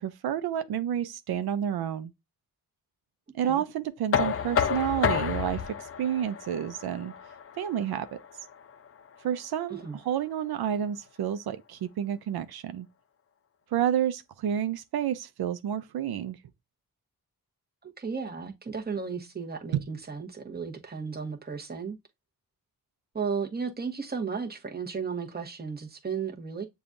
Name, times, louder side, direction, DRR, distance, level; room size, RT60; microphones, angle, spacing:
voice 1, 0.0-2.1 3.3-7.1 7.6-8.2 9.2-12.9 13.7-16.4 19.7-19.8, right 9 dB, 85° right, 0.5 m, -30 dB
Knock, 4.1-9.9, left 7 dB, 40° left, 0.5 m, -31 dB
voice 2, 17.8-22.0 23.1-26.7, right 5 dB, 25° right, 0.9 m, -34 dB
6.8 x 2.3 x 2.5 m
cardioid pair, 75°, 37 cm